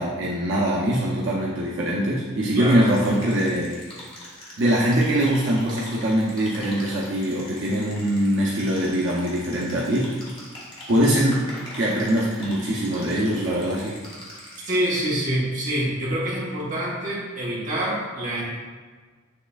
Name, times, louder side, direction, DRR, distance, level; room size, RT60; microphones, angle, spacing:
voice 1, 0.0-3.8 4.6-10.1 10.9-11.5 11.8-13.9, right 1 dB, 65° right, -5 dB, 0.6 m, -22 dB
sound 1, 2.9-15.2, equal, 25° left, 1.1 m, -42 dB
voice 2, 14.7-18.4, right 1 dB, 40° right, -5 dB, 1.1 m, -26 dB
6.4 x 3.2 x 2.4 m, 1.5 s
head